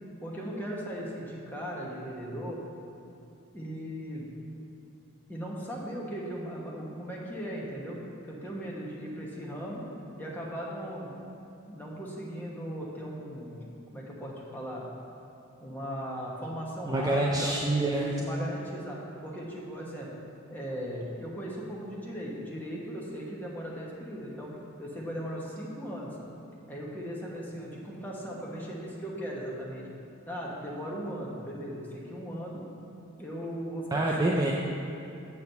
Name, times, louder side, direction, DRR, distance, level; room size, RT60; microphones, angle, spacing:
voice 1, 0.2-2.6 3.5-4.3 5.3-8.0 8.3-9.8 10.2-11.1 11.7-14.8 15.6-17.5 17.9-19.0 19.2-20.1 20.5-24.5 24.8-26.1 26.7-29.9 30.2-32.6 33.2-34.5, equal, 10° left, -5 dB, 1.1 m, -38 dB
voice 2, 16.8-18.1 33.9-34.5, right 2 dB, 15° right, -2 dB, 0.4 m, -26 dB
6.9 x 4.5 x 6.7 m, 2.8 s
head